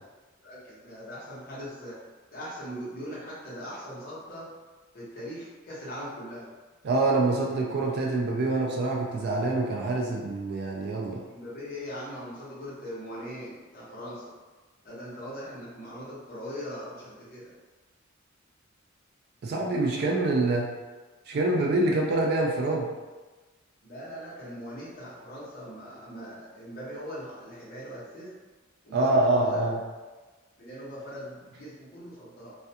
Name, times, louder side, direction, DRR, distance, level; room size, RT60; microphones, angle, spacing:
voice 1, 0.4-2.0 2.3-4.5 4.9-6.5 11.3-14.3 14.8-17.5 23.8-28.3 28.8-29.7 30.6-32.5, equal, 45° left, -8 dB, 0.9 m, -40 dB
voice 2, 6.8-11.2 19.4-20.7 21.3-22.9 28.9-29.8, right 2 dB, 50° right, -1 dB, 0.3 m, -25 dB
2.4 x 2.2 x 2.7 m, 1.3 s
head